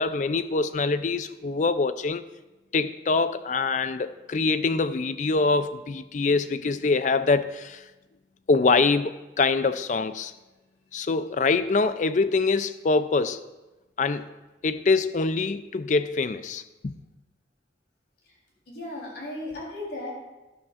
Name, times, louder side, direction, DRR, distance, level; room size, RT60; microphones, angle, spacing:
voice 1, 0.0-2.2 2.7-7.8 8.5-10.3 10.9-13.4 14.0-14.3 14.6-16.9, left 4 dB, 40° left, 12 dB, 0.4 m, -24 dB
voice 2, 18.7-20.1, left 1 dB, 65° left, -3 dB, 3.6 m, -35 dB
12.0 x 11.5 x 2.5 m, 1.1 s
head